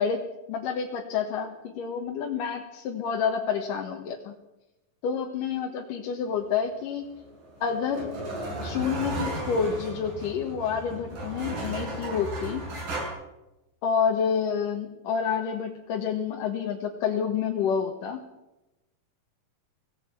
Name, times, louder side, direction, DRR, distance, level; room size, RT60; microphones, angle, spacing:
voice 1, 0.0-4.3 5.0-7.1 7.6-8.1 8.6-12.6 13.8-18.2, left 6 dB, 70° left, 2 dB, 3.1 m, -28 dB
sound 1, 7.2-13.1, right 1 dB, 70° right, 7.8 m, -35 dB
25.0 x 17.5 x 6.0 m, 0.98 s
omnidirectional pair, 4.0 m